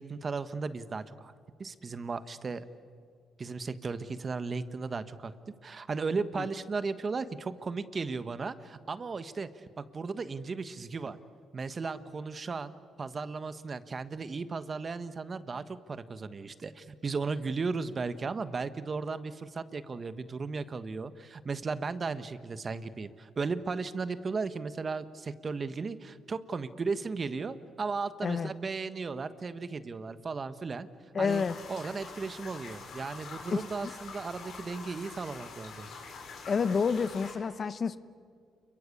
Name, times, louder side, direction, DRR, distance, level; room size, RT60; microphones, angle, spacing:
voice 1, 0.0-1.3 1.6-2.6 3.4-11.2 11.5-30.9 31.2-31.4 31.7-35.9, right 4 dB, 35° right, 12 dB, 1.3 m, -36 dB
voice 2, 31.1-31.6 33.5-33.6 36.5-38.0, left 5 dB, 45° left, 14 dB, 0.9 m, -29 dB
sound 1, 31.2-37.3, left 4 dB, 70° left, 5.4 m, -45 dB
29.0 x 22.5 x 8.5 m, 2.2 s
cardioid pair, 90°, 0 cm